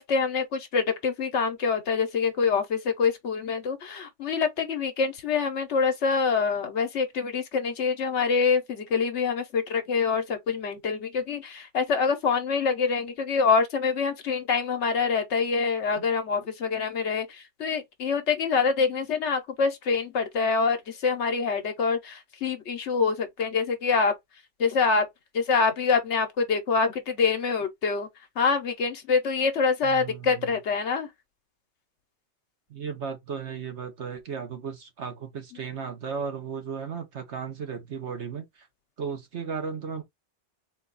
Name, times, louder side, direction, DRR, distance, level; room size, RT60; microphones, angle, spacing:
voice 1, 0.0-24.1 24.6-25.1 25.3-28.1 28.4-31.1, left 5 dB, 75° left, 1.1 m, -25 dB
voice 2, 29.8-30.5 32.7-38.7 39.0-40.0, right 6 dB, 70° right, 1.3 m, -35 dB
3.8 x 2.4 x 3.8 m
omnidirectional pair, 1.2 m